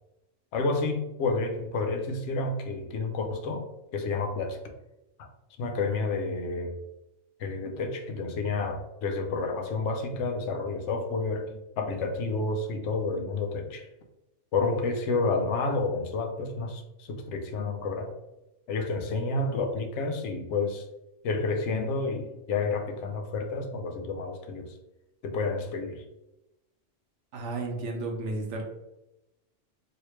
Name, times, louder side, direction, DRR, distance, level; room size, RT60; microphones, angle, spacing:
voice 1, 0.5-3.7 3.9-4.6 5.6-6.8 7.4-13.9 14.5-18.2 18.7-20.8 21.2-24.7 25.2-26.0, left 3 dB, 70° left, 5 dB, 0.9 m, -30 dB
voice 2, 27.3-28.6, right 2 dB, 70° right, 2 dB, 1.0 m, -33 dB
3.0 x 2.8 x 3.0 m, 0.93 s
omnidirectional pair, 1.3 m